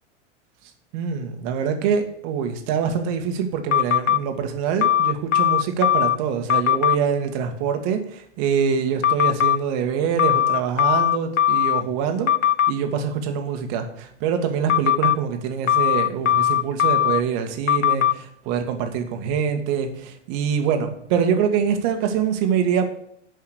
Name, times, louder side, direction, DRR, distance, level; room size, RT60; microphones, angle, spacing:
voice 1, 0.9-12.3 12.7-22.9, right 7 dB, 45° right, 6 dB, 1.9 m, -24 dB
sound 1, 3.7-4.2 4.8-6.2 6.5-7.0 9.0-9.6 10.2-11.8 12.3-12.7 14.7-15.2 15.7-17.2 17.7-18.1, left 10 dB, 90° left, 0.7 m, -19 dB
11.0 x 5.6 x 6.7 m, 0.70 s
hypercardioid pair, 105°, 36 cm